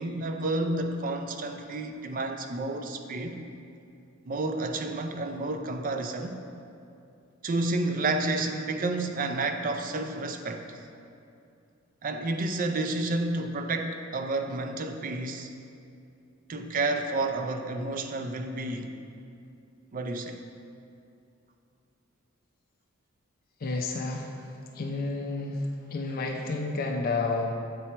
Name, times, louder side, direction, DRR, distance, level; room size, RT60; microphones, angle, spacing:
voice 1, 0.0-3.5 4.3-6.4 7.4-10.8 12.0-15.5 16.5-18.9 19.9-20.4, right 2 dB, 40° right, 6 dB, 0.5 m, -30 dB
voice 2, 23.6-24.4 24.7-27.5, left 3 dB, 45° left, 2 dB, 0.4 m, -30 dB
7.5 x 4.4 x 4.4 m, 2.5 s
head